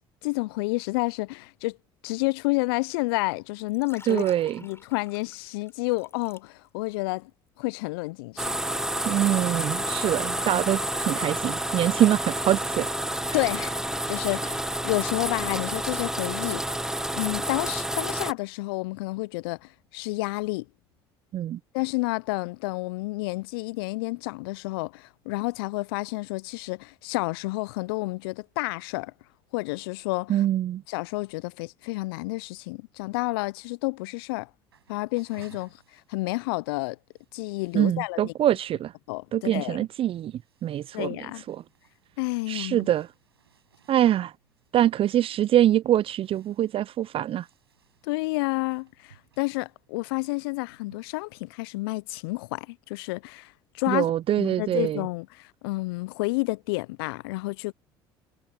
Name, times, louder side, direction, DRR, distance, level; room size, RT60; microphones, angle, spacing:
voice 1, 0.2-1.8 2.0-4.3 4.6-7.3 7.6-8.5 13.3-16.6 17.1-20.7 21.7-29.1 29.5-30.4 30.9-34.5 34.9-37.0 37.3-38.3 39.1-39.9 40.9-41.4 42.2-42.9 48.0-54.1 54.4-57.7, left 24 dB, 70° left, 0.6 m, -30 dB
Liquid, 3.6-6.9 7.2-7.5, left 3 dB, 20° left, 6.7 m, -49 dB
voice 2, 4.1-4.6 9.0-12.9 21.3-21.6 30.3-30.8 37.7-38.9 39.3-40.3 40.6-41.1 41.5-41.6 42.5-43.1 43.9-44.3 44.7-47.5 53.9-55.0, right 12 dB, 45° right, 0.7 m, -24 dB
sound 1, 8.4-18.3, right 1 dB, 5° right, 0.9 m, -29 dB
sound 2, 34.7-51.1, right 8 dB, 90° right, 5.8 m, -60 dB
hypercardioid pair, 60°, 13 cm